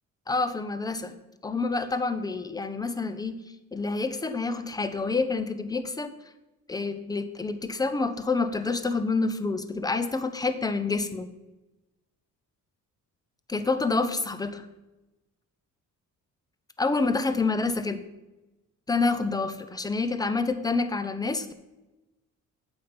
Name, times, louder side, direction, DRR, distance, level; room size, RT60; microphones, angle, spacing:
voice 1, 0.3-1.2 1.4-3.4 3.7-6.1 6.7-11.3 13.5-14.7 16.8-18.0 18.9-21.5, left 3 dB, 10° left, 11 dB, 0.7 m, -28 dB
8.5 x 7.1 x 5.2 m, 1.0 s
cardioid pair, 105°, 32 cm